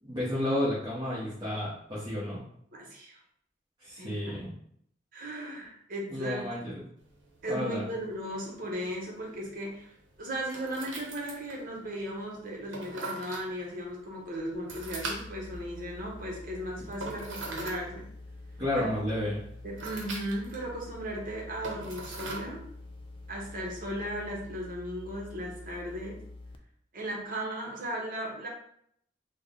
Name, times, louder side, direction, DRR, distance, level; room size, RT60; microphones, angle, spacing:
voice 1, 0.0-2.4 3.8-4.5 6.1-6.8 7.4-7.9 18.6-19.4, left 1 dB, 25° right, -10 dB, 1.1 m, -31 dB
voice 2, 2.7-3.2 4.0-4.4 5.1-6.7 7.4-18.0 18.7-18.9 19.6-22.6 23.3-26.2 26.9-28.5, equal, 50° right, -2 dB, 1.0 m, -36 dB
sound 1, 7.0-24.5, right 2 dB, 80° right, 0.8 m, -44 dB
sound 2, 14.7-26.6, left 2 dB, 30° left, 0.3 m, -47 dB
3.7 x 2.2 x 3.7 m, 0.68 s
head